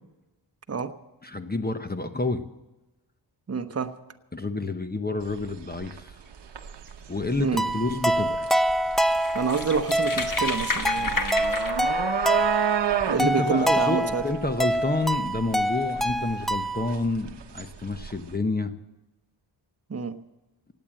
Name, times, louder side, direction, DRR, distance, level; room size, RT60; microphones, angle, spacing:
voice 1, 1.2-2.4 4.3-6.1 7.1-8.5 13.2-18.7, left 2 dB, 20° left, 8 dB, 0.9 m, -29 dB
voice 2, 3.5-3.9 7.4-7.7 9.3-11.1 13.1-14.2 19.9-20.2, right 5 dB, 35° right, 6 dB, 0.9 m, -27 dB
sound 1, 5.2-18.4, right 8 dB, 65° right, 1.0 m, -32 dB
sound 2, 7.6-17.0, right 1 dB, ahead, 0.5 m, -26 dB
sound 3, 7.7-7.9 8.5-8.6 8.9-11.7, left 3 dB, 45° left, 1.4 m, -30 dB
18.0 x 8.8 x 7.6 m, 1.1 s
wide cardioid pair, 85°, 45 cm